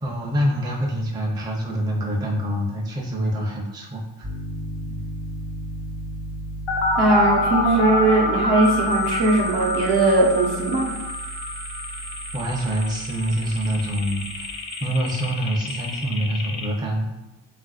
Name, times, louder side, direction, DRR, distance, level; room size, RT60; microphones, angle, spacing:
voice 1, 0.0-4.3 4.9-5.0 12.3-17.1, equal, 10° right, -1 dB, 0.4 m, -26 dB
Piano, 4.2-14.5, right 2 dB, 35° right, 1.0 m, -35 dB
sound 1, 6.7-16.7, left 3 dB, 80° left, 0.6 m, -27 dB
voice 2, 7.0-11.0, right 2 dB, 55° right, -2 dB, 0.9 m, -19 dB
sound 2, 8.6-16.1, right 1 dB, 90° right, 1.0 m, -38 dB
3.4 x 2.4 x 2.3 m, 1.1 s
cardioid pair, 65°, 46 cm